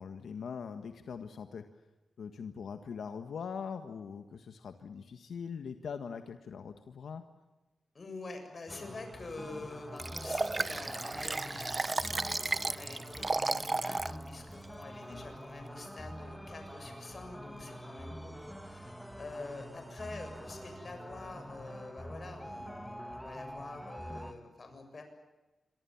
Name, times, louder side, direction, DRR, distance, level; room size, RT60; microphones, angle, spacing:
voice 1, 0.0-1.6 2.2-7.2 15.1-15.2, left 6 dB, 85° left, 7 dB, 1.6 m, -42 dB
voice 2, 7.9-25.0, left 3 dB, 40° left, 6 dB, 7.3 m, -47 dB
sound 1, 8.7-24.3, equal, ahead, 2.2 m, -46 dB
Liquid, 10.0-14.2 14.6-14.7, right 2 dB, 25° right, 0.8 m, -33 dB
27.0 x 24.5 x 7.3 m, 1.1 s
wide cardioid pair, 135°, 0 cm